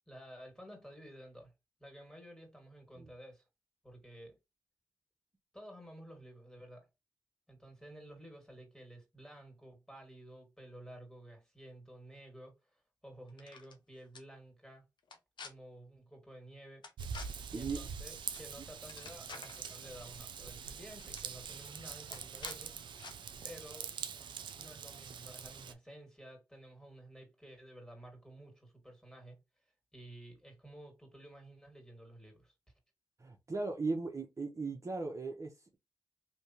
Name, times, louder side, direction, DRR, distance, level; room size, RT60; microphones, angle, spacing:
voice 1, 0.1-1.5 1.8-3.5 3.8-4.4 5.5-6.9 7.5-14.9 15.4-16.8 17.5-23.1 23.4-23.9 24.6-29.4 29.9-32.5, right 1 dB, 10° left, 2.2 m, -53 dB
sound 1, 13.3-13.8 14.1-14.2 15.0-15.5 16.8-17.3 18.3-18.5 18.8-19.6 20.6-20.7 21.0-21.3 22.1-22.6 23.0-23.1, left 4 dB, 70° left, 0.8 m, -49 dB
Raindrop / Vehicle horn car horn honking / Trickle dribble, 17.0-25.7, right 6 dB, 75° right, 0.5 m, -44 dB
voice 2, 33.2-35.8, right 3 dB, 40° right, 0.9 m, -37 dB
3.3 x 2.9 x 2.9 m
supercardioid pair, 45°, 8 cm